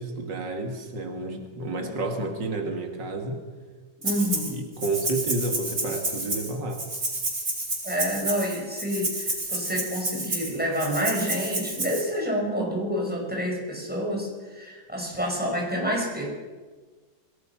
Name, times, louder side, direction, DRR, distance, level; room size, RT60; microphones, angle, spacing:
voice 1, 0.0-3.4 4.2-6.8, right 2 dB, 90° right, 4 dB, 2.8 m, -31 dB
voice 2, 4.0-4.6 7.8-16.3, equal, 5° right, -1 dB, 5.5 m, -28 dB
Rattle (instrument), 4.0-4.5 4.8-12.0, right 2 dB, 65° right, 6.1 m, -30 dB
26.0 x 18.0 x 6.0 m, 1.4 s
omnidirectional pair, 1.9 m